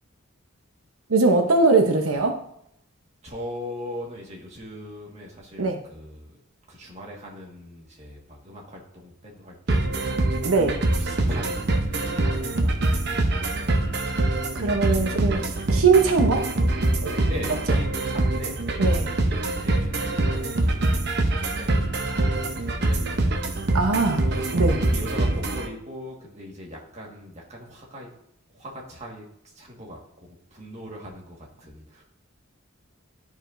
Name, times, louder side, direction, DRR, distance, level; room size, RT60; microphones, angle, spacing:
voice 1, 1.1-2.4 5.6-5.8 10.4-10.8 14.5-16.4 17.0-17.1 18.8-19.1 23.7-24.2 24.5-24.8, right 3 dB, 90° right, 4 dB, 0.8 m, -21 dB
voice 2, 3.2-6.3 6.7-10.3 11.0-12.8 13.1-13.9 15.5-15.8 17.3-19.0 19.6-21.8 22.1-23.4 24.2-24.5 24.9-28.1 28.5-29.3 29.6-32.0, left 1 dB, 35° right, -2 dB, 1.6 m, -40 dB
sound 1, 9.7-25.7, right 2 dB, 50° right, 0.8 m, -24 dB
11.5 x 4.8 x 2.6 m, 0.73 s
head